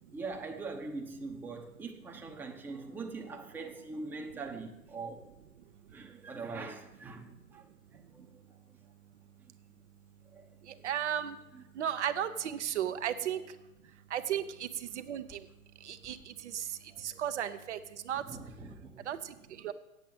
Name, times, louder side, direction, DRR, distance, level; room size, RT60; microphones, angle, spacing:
voice 1, 0.0-5.2 5.9-8.6 10.3-10.9 11.5-11.6 14.2-14.3 16.9-17.2 18.2-19.1, right 3 dB, 5° right, 0.8 m, -43 dB
voice 2, 10.7-11.4 11.8-13.4 14.1-15.4 15.8-18.2 19.1-19.7, right 10 dB, 50° right, 0.7 m, -35 dB
8.3 x 7.8 x 8.1 m
figure-of-eight pair, 105°, 44 cm